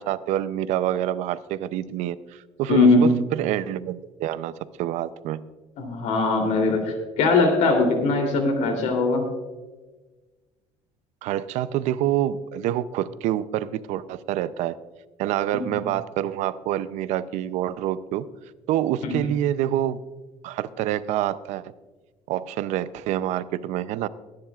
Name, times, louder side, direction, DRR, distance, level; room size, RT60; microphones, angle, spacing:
voice 1, 0.0-5.4 11.2-14.8 15.2-18.2 18.7-20.0 20.4-21.7 22.3-24.1, right 12 dB, 85° right, 15 dB, 0.6 m, -27 dB
voice 2, 2.7-3.1 5.8-9.2 15.7-15.8 19.0-19.2, left 3 dB, 80° left, 4 dB, 3.1 m, -20 dB
22.5 x 10.5 x 2.4 m, 1.2 s
cardioid pair, 175°, 12 cm